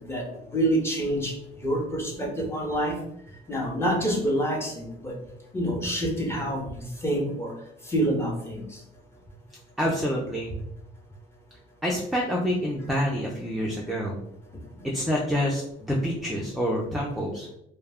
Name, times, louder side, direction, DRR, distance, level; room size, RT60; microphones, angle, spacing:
voice 1, 0.0-1.3 1.6-3.0 3.5-5.2 5.5-7.5 7.9-8.8, right 1 dB, 15° left, -1 dB, 0.7 m, -27 dB
voice 2, 9.8-10.5 11.8-14.2 14.9-17.5, equal, ahead, -2 dB, 0.4 m, -27 dB
2.2 x 2.1 x 3.4 m, 0.76 s
cardioid pair, 110°, 17 cm